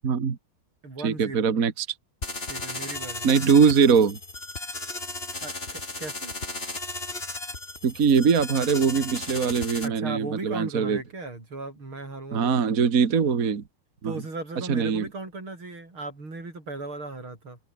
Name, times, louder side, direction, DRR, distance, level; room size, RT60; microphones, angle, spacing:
voice 1, 0.0-0.4 1.0-1.9 3.2-4.2 7.8-11.0 12.3-13.6 14.0-14.2 14.7-15.1, right 6 dB, 45° right, 2.0 m, -22 dB
voice 2, 0.8-1.5 2.5-3.5 5.4-6.3 9.8-12.6 14.0-17.6, right 2 dB, 90° right, 7.9 m, -37 dB
sound 1, 2.2-9.9, left 2 dB, 25° left, 4.4 m, -35 dB
open air
omnidirectional pair, 2.2 m